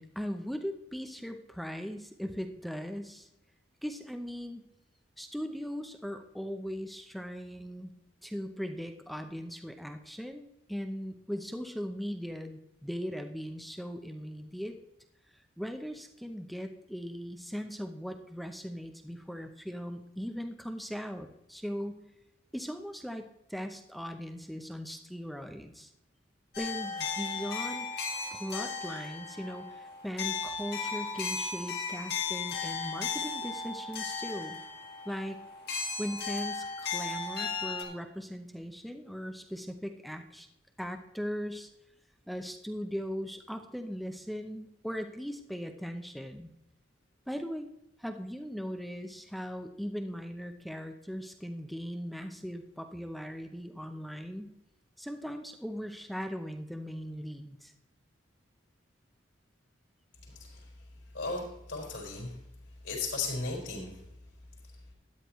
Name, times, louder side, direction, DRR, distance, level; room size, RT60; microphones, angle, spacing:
voice 1, 0.0-3.3 3.8-4.6 5.2-7.9 8.2-14.8 15.6-22.0 22.5-25.9 26.6-27.9 28.3-34.6 35.1-35.4 36.0-40.5 40.8-41.7 42.3-46.5 47.3-47.7 48.0-54.5 55.0-57.7, equal, ahead, 5 dB, 0.6 m, -39 dB
sound 1, 26.5-37.8, left 5 dB, 50° left, 1.8 m, -36 dB
voice 2, 60.2-60.7 61.1-62.4 62.8-64.0, left 3 dB, 70° left, -2 dB, 4.4 m, -36 dB
13.0 x 9.5 x 3.1 m, 0.86 s
head